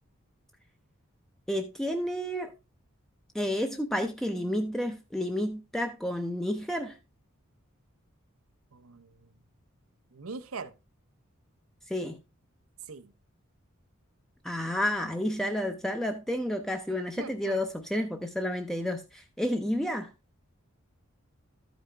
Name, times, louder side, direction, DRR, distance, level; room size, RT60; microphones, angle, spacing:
voice 1, 1.5-2.5 3.3-7.0 11.9-12.2 14.4-20.1, left 1 dB, ahead, 0.5 m, -31 dB
voice 2, 8.7-9.3 10.1-10.7 12.9-13.1 17.2-17.6, right 4 dB, 90° right, 0.8 m, -41 dB
13.0 x 5.1 x 3.3 m
head